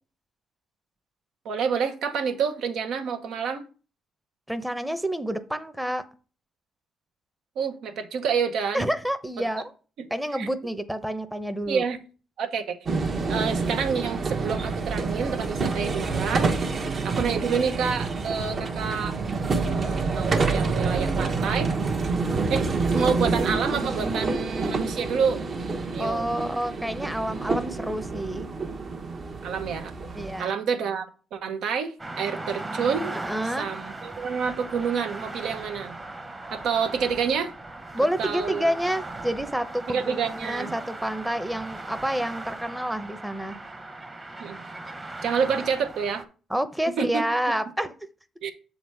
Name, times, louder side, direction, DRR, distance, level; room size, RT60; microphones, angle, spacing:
voice 1, 1.4-3.6 7.6-8.9 10.0-10.1 10.4-10.5 11.7-12.0 12.4-12.8 13.3-19.2 19.5-21.7 22.5-22.7 22.9-25.4 25.9-26.3 29.4-29.9 30.4-31.1 31.3-33.2 33.6-36.0 36.5-37.5 38.2-38.7 39.9-40.7 44.4-44.7 45.2-46.2 47.0-47.2 48.4-48.5, right 6 dB, 80° right, 1.0 m, -28 dB
voice 2, 4.5-6.0 8.7-9.6 10.1-11.8 17.2-17.4 26.0-28.5 30.2-30.5 33.1-33.7 37.9-43.6 46.5-47.9, right 1 dB, 5° right, 0.8 m, -28 dB
sound 1, 12.9-30.4, right 4 dB, 45° right, 1.0 m, -27 dB
sound 2, 32.0-46.2, right 2 dB, 25° right, 1.1 m, -38 dB
7.3 x 4.0 x 4.7 m
cardioid pair, 90°, 0 cm